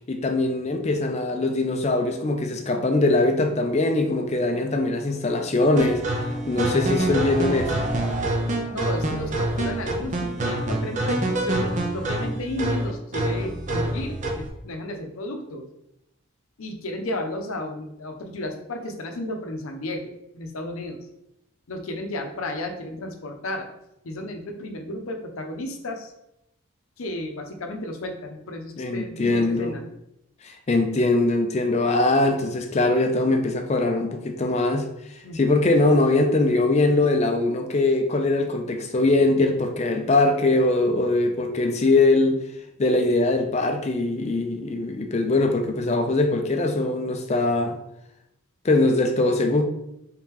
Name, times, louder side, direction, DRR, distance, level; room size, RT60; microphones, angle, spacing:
voice 1, 0.0-6.0 6.5-7.8 28.8-29.7 30.4-34.9 35.3-42.4 42.8-47.8 48.6-49.6, left 2 dB, 30° left, 5 dB, 0.4 m, -22 dB
sound 1, 5.8-14.5, right 1 dB, 35° right, 0.6 m, -26 dB
voice 2, 8.6-15.7 16.6-21.0 21.7-23.7 24.0-26.1 27.0-29.8 35.2-35.7, left 1 dB, 75° left, 5 dB, 0.6 m, -33 dB
3.6 x 2.9 x 3.6 m, 0.83 s
head